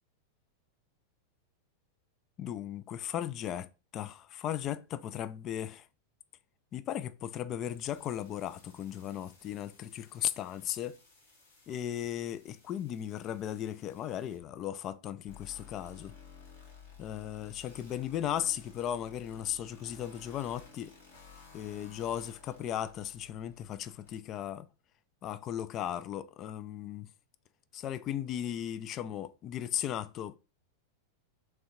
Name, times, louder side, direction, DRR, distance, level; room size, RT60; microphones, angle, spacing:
voice 1, 2.4-3.7 3.9-5.9 6.7-11.0 11.7-16.1 17.0-20.9 21.5-24.7 25.2-27.1 27.7-30.4, left 10 dB, 35° left, 0.4 m, -36 dB
sound 1, 7.6-14.4 14.8-14.9 15.3-24.2, left 5 dB, 65° left, 1.9 m, -56 dB
3.6 x 3.3 x 4.2 m
figure-of-eight pair, 90°, 0 cm